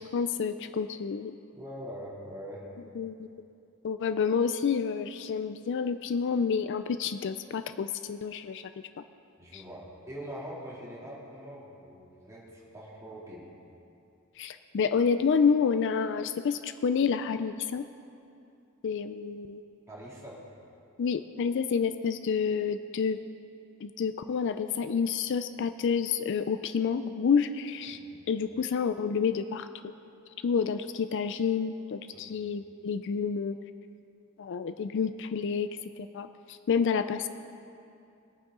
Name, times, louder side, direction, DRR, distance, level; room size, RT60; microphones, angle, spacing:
voice 1, 0.0-1.4 3.0-3.3 3.8-8.7 9.5-9.6 14.4-17.8 18.8-19.6 21.0-23.2 23.8-28.0 28.3-29.7 30.4-33.6 34.4-35.7 36.0-37.3, left 6 dB, 55° left, 11 dB, 0.4 m, -29 dB
voice 2, 1.6-2.7 9.4-13.5 19.9-20.4 28.1-28.2 32.1-32.3, equal, 15° right, -6 dB, 2.6 m, -43 dB
20.5 x 9.4 x 3.7 m, 2.6 s
head